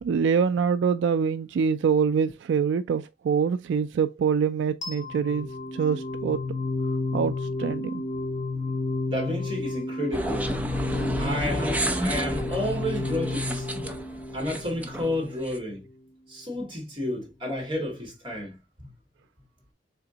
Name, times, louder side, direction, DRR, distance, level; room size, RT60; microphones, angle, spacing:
voice 1, 0.0-6.4 7.1-8.0, right 6 dB, 75° right, 0.3 m, -25 dB
sound 1, 4.8-15.7, left 2 dB, 45° left, 1.8 m, -32 dB
voice 2, 9.1-10.6 11.2-13.7 14.3-15.8 16.3-18.9, left 1 dB, 25° right, 2.0 m, -31 dB
sound 2, 10.1-15.6, right 1 dB, 10° right, 0.5 m, -31 dB
3.8 x 3.4 x 3.8 m
head